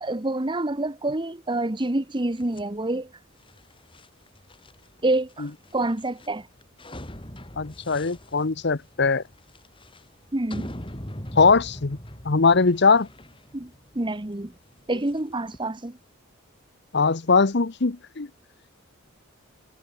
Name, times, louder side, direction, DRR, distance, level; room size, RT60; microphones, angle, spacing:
voice 1, 0.0-3.1 5.0-6.5 10.3-10.7 13.5-14.5 14.9-16.0, right 2 dB, 25° right, 1.0 m, -27 dB
sound 1, 2.4-15.6, equal, 25° left, 6.1 m, -43 dB
voice 2, 7.6-9.2 11.4-12.0 12.2-13.1 16.9-18.3, left 4 dB, 55° left, 0.9 m, -20 dB
head